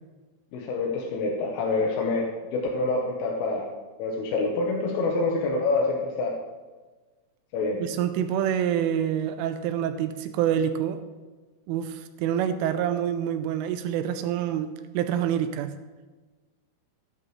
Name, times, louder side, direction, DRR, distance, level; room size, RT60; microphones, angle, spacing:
voice 1, 0.5-3.7 4.0-6.3 7.5-7.8, left 3 dB, 75° left, -1 dB, 3.7 m, -26 dB
voice 2, 7.8-11.0 11.7-14.7 14.9-15.7, right 9 dB, 80° right, 9 dB, 3.0 m, -26 dB
16.0 x 11.0 x 3.2 m, 1.3 s
omnidirectional pair, 5.9 m